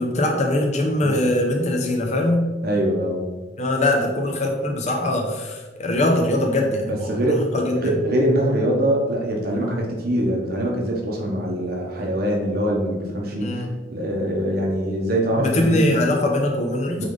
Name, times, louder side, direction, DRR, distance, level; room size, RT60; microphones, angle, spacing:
voice 1, 0.0-2.4 3.6-7.3 7.5-7.8 13.4-13.7 15.4-17.0, left 1 dB, 35° left, 1 dB, 0.7 m, -22 dB
voice 2, 2.6-3.2 6.8-7.5 7.8-13.5 13.9-15.8 17.0-17.1, equal, 50° right, -1 dB, 1.0 m, -23 dB
8.7 x 3.4 x 3.8 m, 1.3 s
head